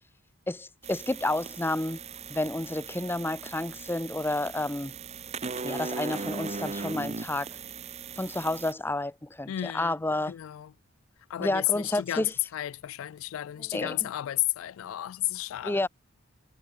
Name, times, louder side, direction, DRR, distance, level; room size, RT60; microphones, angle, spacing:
voice 1, 0.5-2.0 2.3-5.0 5.6-7.5 8.1-10.3 11.4-12.3 13.7-14.0 15.6-15.9, left 2 dB, 10° left, 0.6 m, -30 dB
sound 1, 0.8-8.7, right 4 dB, 35° right, 0.8 m, -38 dB
voice 2, 9.5-10.0 10.3-10.7 11.3-15.8, left 15 dB, 80° left, 0.3 m, -32 dB
head